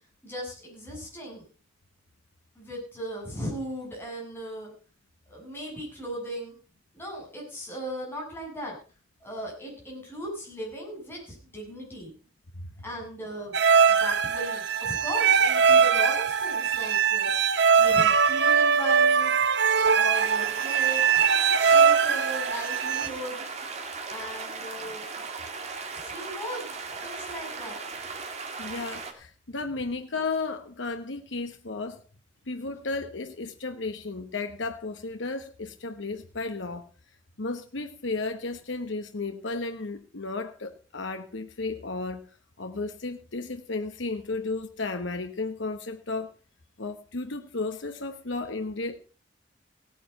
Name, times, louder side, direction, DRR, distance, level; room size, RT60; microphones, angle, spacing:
voice 1, 0.2-1.5 2.5-4.7 5.3-6.5 6.9-8.8 9.2-12.1 12.8-13.6 13.9-17.5 17.8-19.3 20.0-21.2 21.6-23.4 24.1-25.3 25.9-26.7 27.0-27.8, equal, 10° left, -2 dB, 7.6 m, -37 dB
sound 1, 13.5-23.1, right 6 dB, 60° right, 0.8 m, -21 dB
sound 2, 20.1-29.1, right 4 dB, 35° right, 2.2 m, -37 dB
voice 2, 28.6-32.0 32.5-36.8 37.4-42.3 42.6-46.3 46.8-49.0, left 3 dB, 70° left, 6 dB, 1.1 m, -33 dB
16.5 x 9.4 x 5.5 m, 0.37 s
head